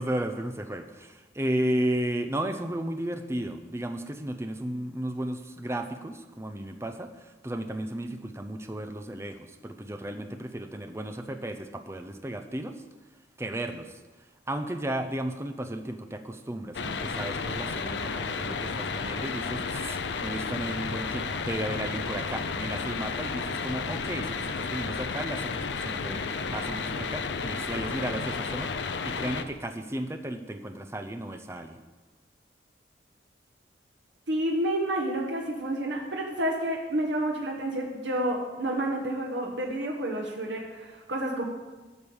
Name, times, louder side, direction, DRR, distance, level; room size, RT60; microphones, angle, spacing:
voice 1, 0.0-12.8 13.4-14.0 14.5-31.8, right 1 dB, 15° right, 7 dB, 0.7 m, -34 dB
sound 1, 16.7-29.4, left 4 dB, 75° left, 0.6 m, -32 dB
voice 2, 34.3-41.4, right 1 dB, 80° right, -1 dB, 1.3 m, -29 dB
12.5 x 5.2 x 7.1 m, 1.2 s
head